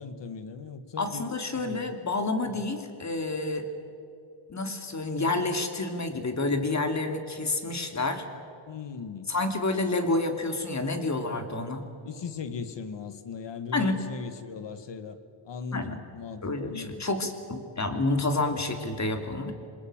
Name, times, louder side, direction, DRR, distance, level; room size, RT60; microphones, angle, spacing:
voice 1, 0.0-1.9 2.6-2.7 8.7-9.3 12.0-15.2 15.5-17.1, left 5 dB, 60° left, 10 dB, 1.9 m, -38 dB
voice 2, 1.0-3.7 4.5-8.2 9.3-11.8 13.7-14.0 15.7-16.0 16.4-19.5, left 2 dB, 35° left, 6 dB, 3.0 m, -29 dB
26.5 x 20.5 x 9.0 m, 2.5 s
cardioid pair, 85°, 49 cm